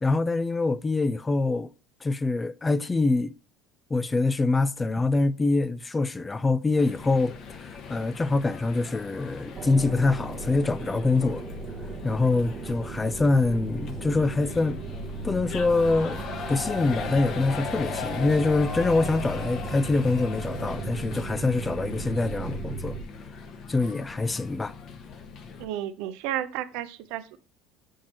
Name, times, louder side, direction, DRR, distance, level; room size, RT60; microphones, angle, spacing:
voice 1, 0.0-1.7 2.0-3.3 3.9-11.4 12.0-14.8 15.2-16.2 16.5-23.0 23.7-24.8, left 3 dB, 15° left, 0.4 m, -25 dB
sound 1, 6.8-25.6, left 6 dB, 55° left, 0.9 m, -39 dB
sound 2, 9.5-23.0, right 4 dB, 35° right, 0.8 m, -36 dB
voice 2, 25.6-27.4, right 12 dB, 75° right, 0.6 m, -32 dB
7.2 x 4.5 x 3.0 m
supercardioid pair, 105°, 0 cm